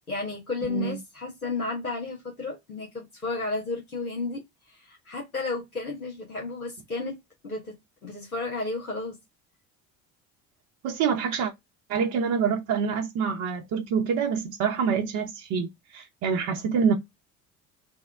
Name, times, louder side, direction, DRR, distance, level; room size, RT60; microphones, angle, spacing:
voice 1, 0.1-4.4 4.8-7.2 7.4-7.7 8.0-9.2, left 3 dB, 90° left, 1.2 m, -32 dB
voice 2, 0.7-1.0 10.8-11.5 11.9-16.9, right 6 dB, 45° right, 0.9 m, -26 dB
3.5 x 2.2 x 3.3 m
figure-of-eight pair, 60°, 42 cm